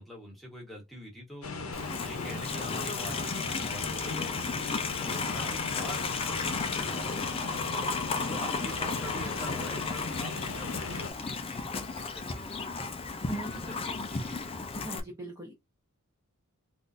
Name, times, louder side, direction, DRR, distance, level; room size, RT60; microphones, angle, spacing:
voice 1, 0.0-1.5 2.0-7.5 8.2-13.0 13.3-14.5, equal, ahead, 1.3 m, -45 dB
sound 1, 1.4-11.1, left 3 dB, 70° left, 0.8 m, -38 dB
Livestock farm animals working animals, 1.7-15.0, left 4 dB, 25° left, 0.4 m, -34 dB
voice 2, 8.2-8.7 13.3-13.8 14.8-15.5, right 1 dB, 15° right, 0.8 m, -41 dB
3.7 x 2.5 x 2.5 m
head